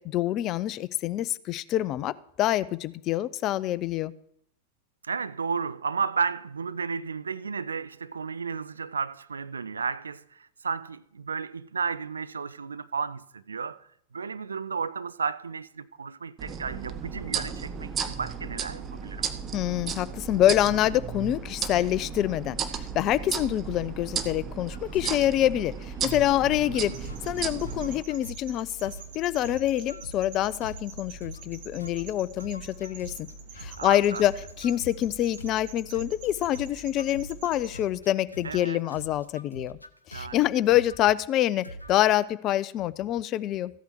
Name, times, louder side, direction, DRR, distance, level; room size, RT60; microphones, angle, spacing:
voice 1, 0.0-4.1 19.5-22.6 22.9-33.3 33.6-39.8 40.1-43.7, left 13 dB, 35° left, 0.4 m, -26 dB
voice 2, 5.0-13.8 14.1-19.3 26.8-27.0 33.8-34.2 38.4-38.8 40.1-40.4, right 5 dB, 75° right, 0.4 m, -33 dB
sound 1, 16.4-28.0, right 7 dB, 25° right, 0.9 m, -34 dB
sound 2, 24.7-25.3 25.8-26.8 27.0-27.4 27.6-28.6 28.8-29.2 29.4-31.5 31.8-36.3 36.5-38.6 38.9-41.0 41.6-42.2, right 1 dB, 85° left, 0.7 m, -45 dB
sound 3, 26.9-37.8, right 3 dB, 50° right, 1.9 m, -45 dB
14.5 x 8.2 x 4.6 m
figure-of-eight pair, 90°, 0 cm